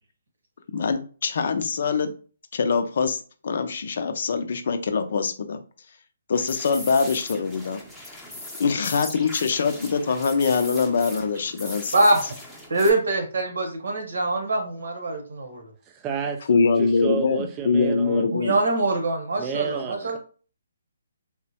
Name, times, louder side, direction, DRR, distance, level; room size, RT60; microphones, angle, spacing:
voice 1, 0.7-2.1 2.5-5.6 6.3-7.8 8.6-11.9 16.5-18.6, left 5 dB, 60° left, 8 dB, 0.5 m, -23 dB
sound 1, 6.3-12.9, left 1 dB, ahead, 0.7 m, -39 dB
voice 2, 11.9-12.4 12.7-15.7 18.3-20.2, right 2 dB, 75° right, 4 dB, 1.0 m, -24 dB
voice 3, 15.9-18.3 19.4-20.2, right 7 dB, 20° right, 4 dB, 0.3 m, -31 dB
3.6 x 2.0 x 2.8 m, 0.39 s
hypercardioid pair, 150°, 0 cm